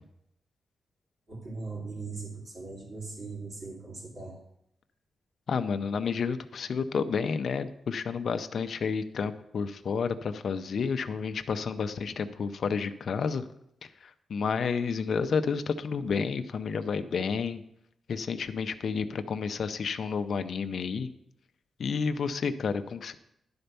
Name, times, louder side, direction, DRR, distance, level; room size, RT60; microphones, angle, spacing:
voice 1, 1.3-4.4, right 4 dB, 50° right, -3 dB, 2.7 m, -39 dB
voice 2, 5.5-13.5 14.3-17.6 18.1-21.1 21.8-23.1, left 5 dB, 55° left, 10 dB, 0.6 m, -30 dB
11.5 x 4.4 x 6.8 m, 0.78 s
wide cardioid pair, 155°, 0 cm